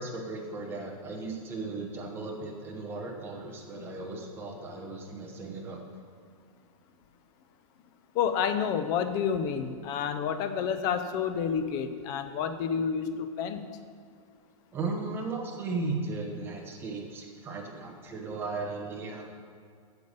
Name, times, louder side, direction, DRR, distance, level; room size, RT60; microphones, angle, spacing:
voice 1, 0.0-5.8 14.7-19.3, right 3 dB, 10° right, 0 dB, 1.1 m, -36 dB
voice 2, 8.1-13.6, left 7 dB, 20° left, 9 dB, 0.5 m, -29 dB
9.4 x 7.0 x 6.7 m, 2.3 s
hypercardioid pair, 165°, 18 cm